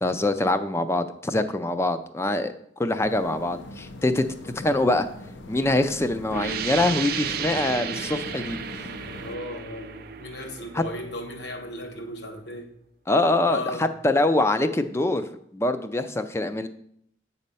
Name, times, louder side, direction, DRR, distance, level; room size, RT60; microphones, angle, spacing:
voice 1, 0.0-2.5 2.8-4.3 4.6-5.1 5.5-8.6 10.7-10.8 13.1-15.2 15.5-16.7, left 2 dB, 15° left, 0.3 m, -24 dB
sound 1, 3.0-9.4, left 2 dB, 75° left, 0.7 m, -41 dB
sound 2, 6.3-11.8, right 8 dB, 50° right, 0.4 m, -34 dB
voice 2, 9.2-12.7 13.4-13.9, left 1 dB, 60° left, 1.1 m, -36 dB
8.1 x 4.2 x 5.4 m
head